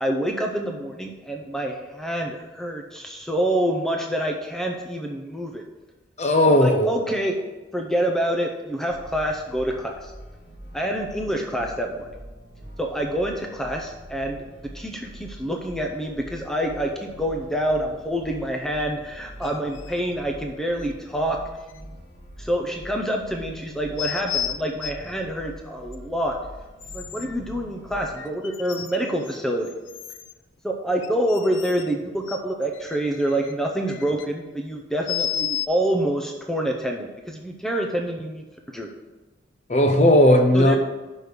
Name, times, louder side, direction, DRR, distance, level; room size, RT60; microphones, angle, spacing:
voice 1, 0.0-5.6 6.6-7.4 7.7-10.1 10.7-12.1 12.8-21.4 22.4-26.4 26.9-29.7 30.6-38.4 38.7-38.9 40.5-40.8, right 1 dB, ahead, 1 dB, 0.6 m, -27 dB
voice 2, 6.2-7.0 39.7-40.8, left 1 dB, 35° left, 5 dB, 0.7 m, -16 dB
sound 1, 8.9-28.1, equal, 55° left, 1.7 m, -44 dB
sound 2, 19.4-20.0 20.8-20.9 21.7-21.8 24.0-25.1 25.9-26.0 26.8-27.4 28.1-29.4 29.6-30.3 31.0-31.9 32.3-34.3 35.1-35.7, left 10 dB, 85° left, 0.6 m, -32 dB
6.2 x 5.2 x 6.6 m, 1.1 s
head